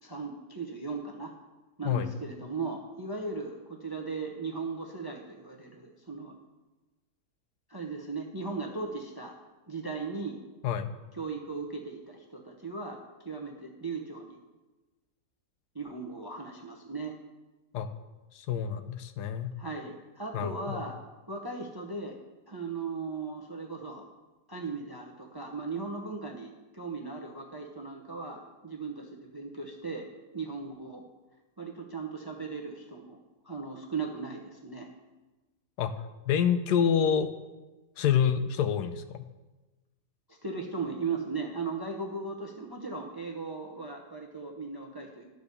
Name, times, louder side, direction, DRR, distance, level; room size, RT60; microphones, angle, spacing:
voice 1, 0.0-1.3 1.8-6.3 7.7-9.3 9.7-10.4 11.1-13.0 13.2-14.4 15.7-17.1 19.6-21.0 21.3-22.2 22.5-24.0 24.5-31.0 31.6-33.2 33.4-34.9 40.3-45.3, right 4 dB, 20° right, 1 dB, 0.6 m, -37 dB
voice 2, 18.3-19.5 20.3-20.8 35.8-35.9 36.3-37.3 38.0-39.2, left 8 dB, 80° left, 10 dB, 1.2 m, -27 dB
11.5 x 4.9 x 6.7 m, 1.2 s
omnidirectional pair, 1.8 m